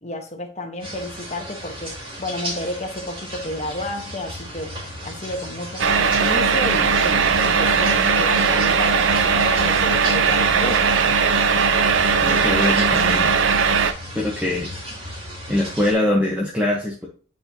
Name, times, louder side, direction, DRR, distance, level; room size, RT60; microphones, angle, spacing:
voice 1, 0.0-4.8 5.0-11.0, left 1 dB, 35° left, 1.1 m, -31 dB
sound 1, 0.8-15.9, equal, 25° right, 2.2 m, -35 dB
sound 2, 5.8-13.9, right 5 dB, 70° right, 0.6 m, -18 dB
voice 2, 12.2-13.3 14.1-14.7 15.5-17.1, left 1 dB, 5° right, 0.9 m, -22 dB
8.2 x 4.3 x 2.7 m
head